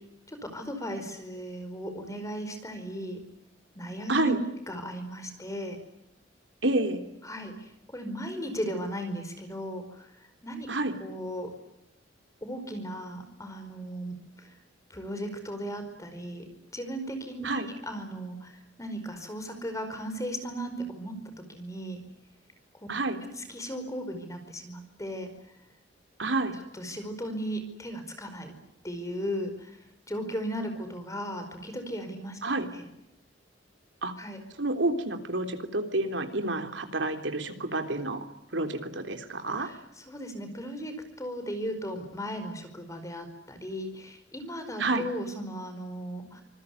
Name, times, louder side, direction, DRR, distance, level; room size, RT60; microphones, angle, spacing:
voice 1, 0.3-3.2 3.7-4.3 4.7-5.8 7.2-10.1 10.4-10.7 11.0-11.5 12.4-14.5 14.9-16.4 16.7-21.1 21.5-22.0 23.5-25.3 26.7-28.5 28.8-29.8 30.1-32.4 32.7-32.9 34.2-34.4 39.6-39.8 40.1-46.4, equal, 15° left, 7 dB, 5.0 m, -36 dB
voice 2, 4.1-4.4 6.6-7.0 10.7-10.9 17.4-17.7 22.9-23.2 26.2-26.6 32.4-32.7 34.0-34.1 34.6-38.2 38.5-39.7 44.8-45.1, right 2 dB, 75° right, 6 dB, 3.5 m, -29 dB
26.0 x 20.5 x 9.6 m, 0.83 s
head